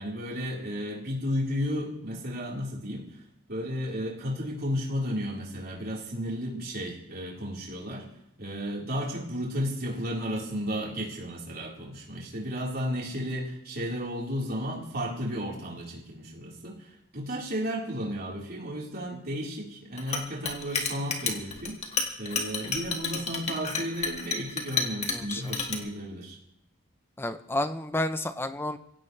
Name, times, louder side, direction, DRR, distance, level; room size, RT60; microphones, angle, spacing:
voice 1, 0.0-3.2 3.5-8.1 8.4-21.8 22.2-26.4, equal, 45° right, -3 dB, 4.2 m, -33 dB
Chink clink, 20.0-25.8, left 4 dB, 30° left, 2.0 m, -30 dB
voice 2, 25.1-25.5 27.2-28.8, left 1 dB, 10° left, 10 dB, 0.6 m, -31 dB
23.0 x 16.5 x 3.3 m, 0.80 s
head